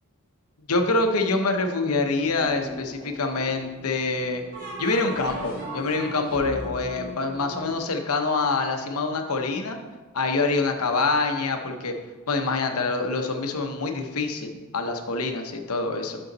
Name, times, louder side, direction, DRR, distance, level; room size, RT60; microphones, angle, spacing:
voice 1, 0.7-4.4 4.8-9.8 10.1-11.9 12.3-16.2, left 3 dB, 75° left, 5 dB, 0.8 m, -25 dB
sound 1, 1.9-7.8, left 1 dB, 15° right, 1.7 m, -44 dB
sound 2, 2.4-3.2 4.5-8.2, right 1 dB, 40° right, 2.1 m, -37 dB
6.7 x 6.3 x 4.0 m, 1.3 s
head